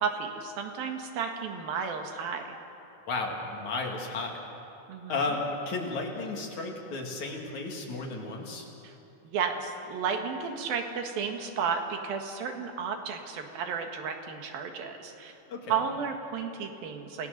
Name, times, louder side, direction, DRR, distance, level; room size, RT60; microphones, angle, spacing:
voice 1, 0.0-2.4 4.9-5.2 8.8-9.0 9.2-15.4 15.7-17.3, right 6 dB, 85° right, 4 dB, 3.5 m, -33 dB
voice 2, 3.1-4.5 5.1-8.7 15.5-15.8, left 3 dB, 55° left, 0 dB, 3.5 m, -33 dB
28.5 x 18.5 x 6.7 m, 2.9 s
omnidirectional pair, 4.0 m